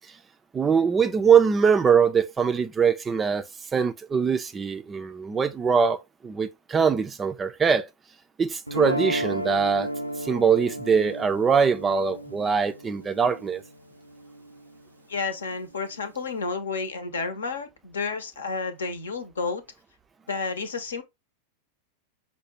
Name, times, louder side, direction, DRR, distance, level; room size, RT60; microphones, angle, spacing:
voice 1, 0.5-3.4 3.7-7.9 8.4-9.9 10.2-13.6, right 6 dB, 20° right, 0.4 m, -22 dB
sound 1, 8.7-14.8, right 1 dB, 85° right, 0.4 m, -33 dB
voice 2, 15.1-19.6 20.3-21.0, left 4 dB, 70° left, 0.8 m, -31 dB
5.6 x 2.2 x 3.0 m
figure-of-eight pair, 90°, 0 cm